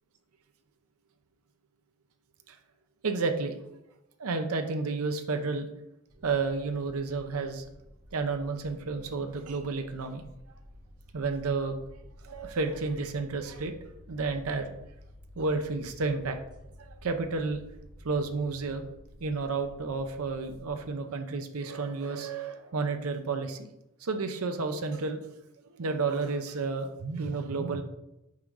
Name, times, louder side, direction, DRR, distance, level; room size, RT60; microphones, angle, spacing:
voice 1, 3.0-3.6 4.2-5.7 6.2-7.7 8.1-10.2 11.1-11.8 12.2-13.7 14.1-14.7 15.4-16.4 16.8-17.6 18.0-18.8 19.2-23.7 24.0-25.2 25.7-27.8, right 4 dB, 80° right, 6 dB, 0.6 m, -31 dB
sound 1, 6.1-20.9, equal, 20° right, 1.3 m, -52 dB
5.6 x 3.7 x 4.7 m, 0.87 s
head